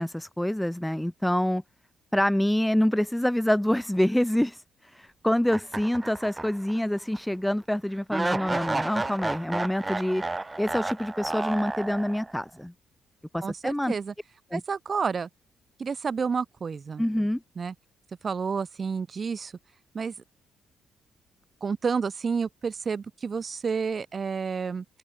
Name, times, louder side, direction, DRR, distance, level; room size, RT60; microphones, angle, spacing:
voice 1, 0.0-1.6 2.1-10.2 10.6-12.7 13.3-14.0 14.5-14.6 17.0-17.4, left 1 dB, 5° left, 2.8 m, -26 dB
sound 1, 5.5-6.8 7.1-7.2 8.1-12.4, right 2 dB, 15° right, 2.4 m, -32 dB
voice 2, 13.4-14.1 14.5-15.3 15.8-17.0 17.6-17.7 18.2-19.5 19.9-20.1 21.6-24.8, right 5 dB, 30° right, 2.5 m, -30 dB
open air
cardioid pair, 165°, 0 cm